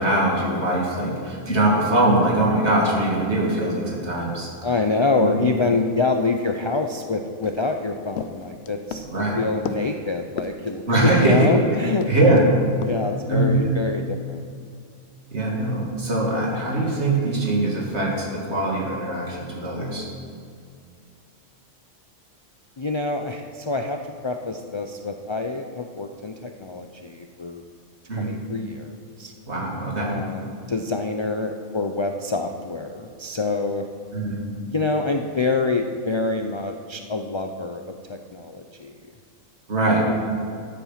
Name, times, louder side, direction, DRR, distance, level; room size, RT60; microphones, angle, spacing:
voice 1, 0.0-4.5 5.2-5.4 9.1-9.4 10.9-11.5 12.1-12.4 13.3-13.7 15.3-20.1 28.1-28.3 29.5-30.1 34.1-34.4 39.7-40.0, right 2 dB, 60° right, -2 dB, 2.7 m, -22 dB
voice 2, 4.6-12.4 12.9-14.4 22.8-27.6 28.2-29.3 30.0-33.9 34.7-39.0 39.8-40.1, left 3 dB, 40° left, 5 dB, 0.4 m, -26 dB
sound 1, 7.4-11.6 12.0-12.4 12.8-13.0, left 6 dB, 60° left, 0.9 m, -35 dB
13.0 x 8.4 x 5.8 m, 2.3 s
omnidirectional pair, 1.3 m